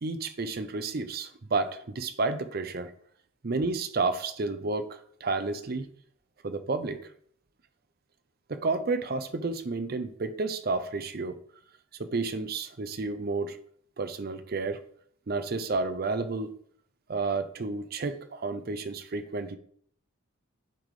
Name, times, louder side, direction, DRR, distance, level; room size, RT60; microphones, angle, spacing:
voice 1, 0.0-2.9 3.4-5.9 6.4-7.0 8.5-11.4 12.0-13.6 14.0-14.8 15.3-16.5 17.1-19.6, right 3 dB, 45° right, 11 dB, 0.5 m, -31 dB
7.5 x 3.5 x 4.8 m, 0.62 s
head